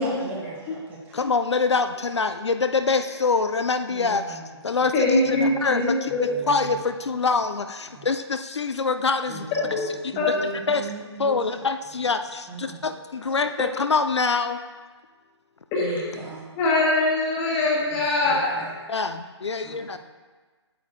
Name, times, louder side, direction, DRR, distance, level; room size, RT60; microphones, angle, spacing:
voice 1, 0.0-1.3 3.9-4.4 5.4-5.6 6.3-6.8 7.9-8.1 9.3-11.6 12.5-12.8 15.8-16.5 17.9-18.7 19.6-20.0, right 2 dB, 10° right, -4 dB, 1.0 m, -37 dB
voice 2, 1.1-6.1 6.5-9.5 10.0-10.1 10.7-10.8 11.2-14.6 18.9-20.0, left 4 dB, 70° left, 8 dB, 0.4 m, -25 dB
voice 3, 4.9-6.3 9.7-9.8 10.2-10.3 15.7-16.1 16.6-18.7, left 2 dB, 15° left, -4 dB, 1.4 m, -23 dB
8.7 x 8.4 x 2.4 m, 1.4 s
figure-of-eight pair, 140°, 15 cm